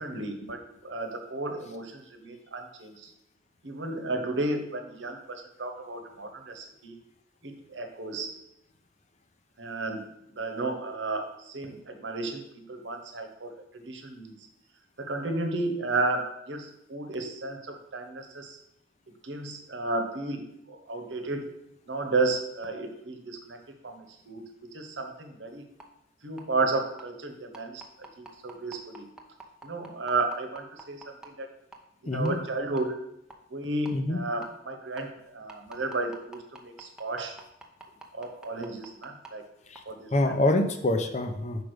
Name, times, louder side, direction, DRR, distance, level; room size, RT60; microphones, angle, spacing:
voice 1, 0.0-3.1 3.6-7.0 7.4-8.3 9.6-14.3 15.0-18.6 19.2-21.5 21.9-23.6 23.8-24.4 24.7-25.6 26.2-29.0 29.6-31.5 32.0-33.0 33.5-37.4 38.1-39.5 39.8-40.3, right 2 dB, 85° right, 5 dB, 1.2 m, -33 dB
sound 1, 25.8-25.9 26.4-26.5 27.0-27.1 27.5-31.3 31.7-31.8 32.3-32.4 32.8-32.9 33.3-33.4 33.9-34.0 34.4-34.5 35.0-35.1 35.5-39.3 39.8-39.9, right 3 dB, 5° right, 0.7 m, -45 dB
voice 2, 32.1-32.4 33.9-34.2 39.7-39.8 40.1-41.6, left 2 dB, 40° left, 6 dB, 0.7 m, -26 dB
5.1 x 5.0 x 6.3 m, 0.81 s
head